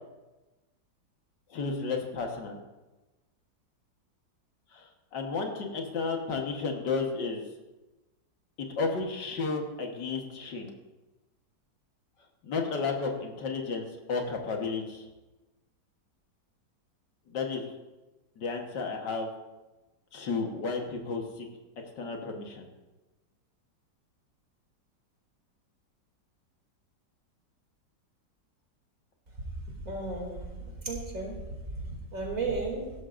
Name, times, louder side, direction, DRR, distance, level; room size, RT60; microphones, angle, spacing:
voice 1, 1.5-2.6 4.7-7.4 8.6-10.7 12.4-15.1 17.3-17.7 18.4-19.3 20.1-21.5 22.0-22.7, left 4 dB, 75° left, 2 dB, 2.0 m, -32 dB
voice 2, 29.8-31.4 31.7-32.9, right 3 dB, 50° right, -1 dB, 3.0 m, -34 dB
16.5 x 12.5 x 2.6 m, 1.1 s
omnidirectional pair, 1.9 m